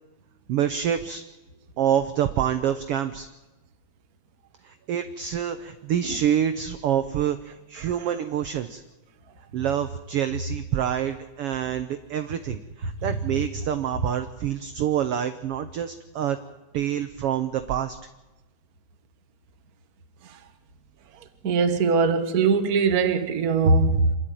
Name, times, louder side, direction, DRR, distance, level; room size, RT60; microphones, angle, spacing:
voice 1, 0.5-1.2 1.8-3.3 4.6-8.8 9.5-16.4 16.7-18.0, right 9 dB, 70° right, 1.5 m, -27 dB
voice 2, 21.4-24.2, right 4 dB, 45° right, 1.3 m, -21 dB
26.5 x 11.5 x 9.1 m
omnidirectional pair, 3.4 m